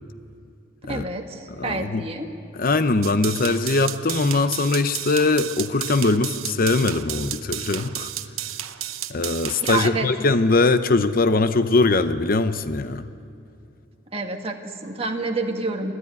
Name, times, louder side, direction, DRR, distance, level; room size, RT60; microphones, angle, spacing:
voice 1, 0.8-2.3 9.6-10.1 14.1-15.9, right 3 dB, 30° right, 3 dB, 1.8 m, -28 dB
voice 2, 1.5-2.1 2.6-8.1 9.1-13.0, left 3 dB, 45° left, 11 dB, 0.7 m, -21 dB
sound 1, 3.0-9.9, right 12 dB, 85° right, 0.9 m, -32 dB
29.0 x 13.0 x 9.5 m, 2.6 s
head